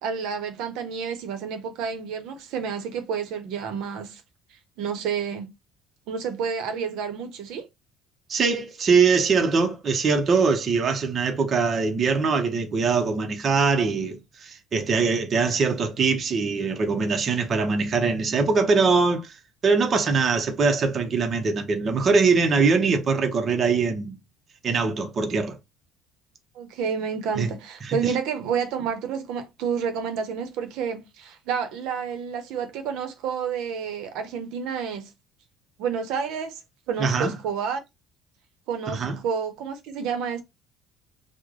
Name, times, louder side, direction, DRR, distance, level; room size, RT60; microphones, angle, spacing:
voice 1, 0.0-4.2 4.8-5.5 6.1-7.7 26.5-35.1 35.8-36.6 36.9-37.8 38.7-40.4, right 6 dB, 70° right, 0.7 m, -29 dB
voice 2, 8.3-19.4 19.6-24.2 24.6-25.6 27.4-27.5 28.0-28.1 37.0-37.3 38.9-39.2, right 4 dB, 30° right, 0.6 m, -22 dB
3.1 x 2.0 x 3.7 m
cardioid pair, 140°, 0 cm